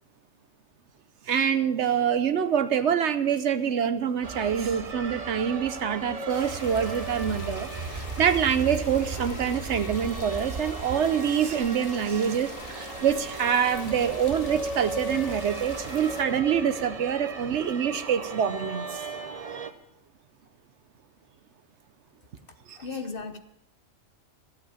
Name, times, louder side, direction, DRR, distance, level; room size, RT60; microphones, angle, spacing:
voice 1, 1.3-19.0 22.7-22.8, right 8 dB, 65° right, 1.0 m, -26 dB
sound 1, 4.2-19.7, right 4 dB, 35° right, 0.8 m, -36 dB
sound 2, 6.3-16.2, left 4 dB, 85° left, 1.8 m, -43 dB
voice 2, 22.8-23.4, left 4 dB, 50° left, 1.0 m, -35 dB
14.0 x 8.3 x 6.9 m
omnidirectional pair, 1.3 m